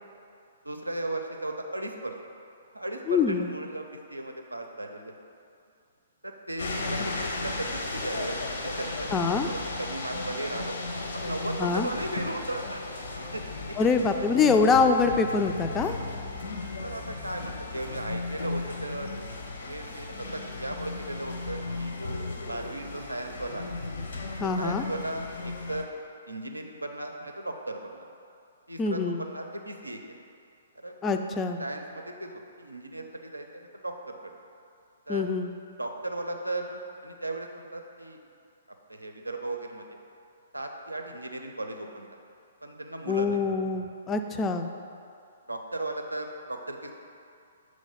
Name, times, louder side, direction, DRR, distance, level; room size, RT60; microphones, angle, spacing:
voice 1, 0.6-2.1 2.7-5.1 6.2-8.4 8.8-10.8 11.1-12.8 13.3-13.4 13.7-14.0 16.7-19.1 19.7-23.7 24.4-25.9 26.3-28.1 28.7-30.1 30.8-31.0 31.6-32.3 32.6-34.3 35.1-35.3 35.8-38.2 38.9-39.8 40.5-42.1 42.6-43.4 45.5-46.9, right 2 dB, 85° right, 3 dB, 0.5 m, -36 dB
voice 2, 3.1-3.5 9.1-9.5 11.6-11.9 13.8-16.0 24.4-24.8 28.8-29.2 31.0-31.6 35.1-35.5 43.1-44.7, left 4 dB, 20° left, 6 dB, 0.3 m, -24 dB
sound 1, 6.6-25.8, left 2 dB, 65° left, 0.7 m, -35 dB
Bass guitar, 15.4-21.8, left 8 dB, 90° left, 1.1 m, -49 dB
6.1 x 3.2 x 5.5 m, 2.5 s
figure-of-eight pair, 120°, 0 cm